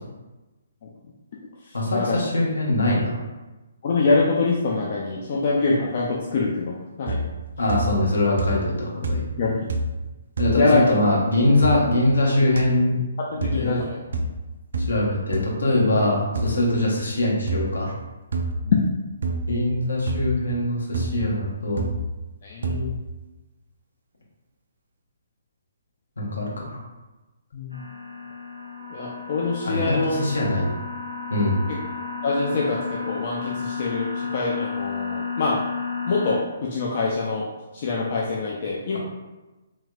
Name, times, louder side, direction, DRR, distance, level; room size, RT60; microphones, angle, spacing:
voice 1, 1.7-3.2 7.6-9.2 10.4-10.6 10.9-13.0 13.3-13.8 14.9-17.9 19.5-21.9 26.2-26.8 29.6-30.7 31.3-31.6, left 1 dB, 65° left, -4 dB, 0.9 m, -22 dB
voice 2, 3.8-7.2 9.4-9.7 10.6-10.9 13.2-14.0 18.6-18.8 22.4-22.9 27.5-27.8 28.9-30.2 31.7-31.8 32.2-35.6 36.1-37.5 37.7-39.0, left 3 dB, 40° left, -3 dB, 0.4 m, -24 dB
sound 1, 7.1-7.4 7.7-8.1 8.4-8.8 9.0-9.4 9.7-10.0 10.4-10.6 11.6-11.8 12.6-12.7 13.4-13.6 14.1-14.3 14.7-14.9 15.3-15.4 16.4-16.5 17.5-17.7 18.3-18.6 19.2-19.5 20.1-20.3 20.9-21.2 21.8-22.0 22.6-22.9, right 2 dB, 55° right, 0.3 m, -27 dB
sound 2, 27.7-36.4, left 5 dB, 90° right, 0.7 m, -32 dB
3.2 x 3.1 x 2.3 m, 1.1 s
figure-of-eight pair, 130°, 0 cm